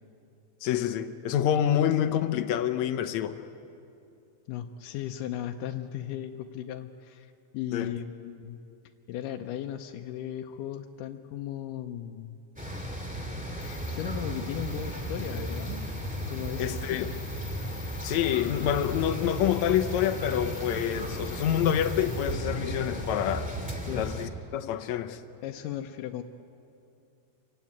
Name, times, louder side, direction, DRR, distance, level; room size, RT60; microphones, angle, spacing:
voice 1, 0.6-3.4 7.7-7.9 16.6-17.1 18.0-23.5 23.9-25.2, left 10 dB, 70° left, 2.0 m, -27 dB
voice 2, 4.5-8.6 9.1-12.4 13.6-15.9 16.3-17.2 23.8-24.1 25.4-26.2, left 11 dB, 85° left, 2.3 m, -36 dB
sound 1, 12.6-24.3, right 1 dB, 5° right, 1.9 m, -35 dB
sound 2, 13.6-22.3, left 5 dB, 35° left, 1.1 m, -49 dB
27.0 x 16.0 x 9.4 m
omnidirectional pair, 3.7 m